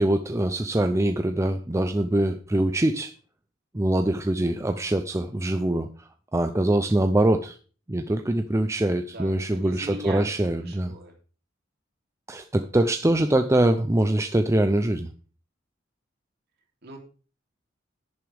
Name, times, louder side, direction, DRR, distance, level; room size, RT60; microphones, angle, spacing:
voice 1, 0.0-3.1 3.7-7.6 7.9-10.9 12.3-15.1, right 1 dB, 15° right, 7 dB, 0.5 m, -23 dB
voice 2, 9.1-10.3 10.6-11.1 16.8-17.0, right 2 dB, 55° right, 1 dB, 3.2 m, -40 dB
11.0 x 9.4 x 3.5 m, 0.37 s
head